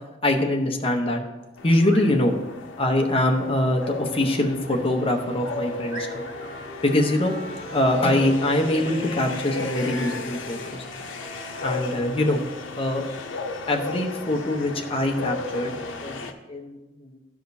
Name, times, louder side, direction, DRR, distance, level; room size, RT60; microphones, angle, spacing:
voice 1, 0.2-1.2 1.6-2.3 2.8-6.2 6.8-7.4 7.7-10.8 11.6-12.4 12.8-13.0 13.7-15.8 16.0-16.2 16.5-17.2, left 1 dB, 30° left, 3 dB, 0.8 m, -23 dB
sound 1, 1.6-16.3, left 3 dB, 90° left, 0.7 m, -34 dB
sound 2, 1.7-2.1 4.6-4.8 5.4-5.5 5.9-6.5 9.2-9.5 9.9-10.2, right 1 dB, 75° right, 2.5 m, -42 dB
Wind instrument woodwind instrument, 4.8-8.4 8.7-13.0, equal, 30° right, 0.7 m, -43 dB
12.5 x 5.0 x 2.7 m, 1.1 s
head